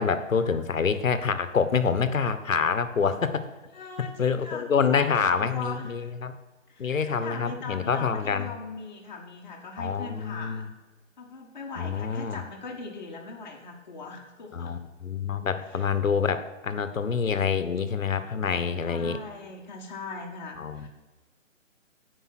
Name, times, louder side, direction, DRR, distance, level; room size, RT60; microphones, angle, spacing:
voice 1, 0.0-3.5 4.0-6.3 6.8-8.5 9.8-10.7 11.8-12.4 14.5-19.2 20.6-20.9, left 6 dB, 80° left, 11 dB, 1.2 m, -26 dB
voice 2, 3.7-6.1 6.7-10.7 11.2-14.8 15.6-15.9 18.9-20.9, left 4 dB, 35° left, 1 dB, 1.7 m, -40 dB
15.0 x 5.4 x 5.9 m, 1.3 s
hypercardioid pair, 170°, 39 cm